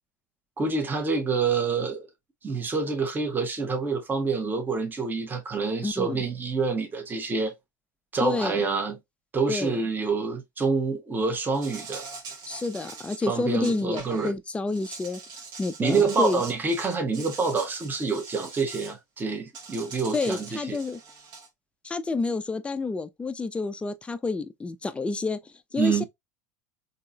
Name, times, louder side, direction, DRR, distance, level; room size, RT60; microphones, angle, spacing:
voice 1, 0.6-2.1 2.4-7.5 8.1-9.0 9.3-12.1 13.3-14.3 15.8-20.8 25.8-26.0, right 4 dB, 20° right, 0.9 m, -27 dB
voice 2, 5.8-6.2 8.2-8.6 9.5-9.8 12.5-15.2 15.6-16.4 20.1-21.0 21.8-25.4 25.7-26.0, left 3 dB, 10° left, 0.4 m, -29 dB
Insect, 11.5-14.3 14.7-18.9 19.5-21.5, right 5 dB, 50° right, 1.0 m, -43 dB
3.7 x 2.8 x 2.3 m
hypercardioid pair, 85°, 10 cm